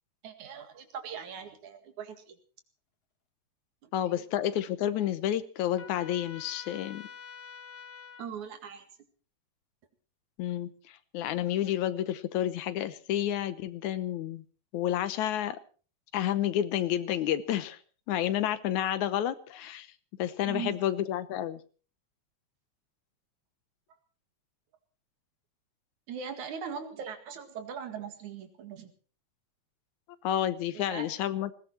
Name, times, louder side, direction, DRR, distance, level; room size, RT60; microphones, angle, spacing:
voice 1, 0.2-2.4 3.8-3.9 8.2-8.9 20.4-20.8 26.1-28.9 30.8-31.1, right 6 dB, 90° right, 8 dB, 3.4 m, -40 dB
voice 2, 3.9-7.1 10.4-14.4 14.7-15.6 16.1-17.8 18.1-19.9 20.2-21.6 30.2-31.6, left 11 dB, 85° left, 13 dB, 2.4 m, -30 dB
Trumpet, 5.8-8.3, left 7 dB, 45° left, 1.4 m, -47 dB
20.0 x 16.5 x 4.4 m, 0.39 s
omnidirectional pair, 3.3 m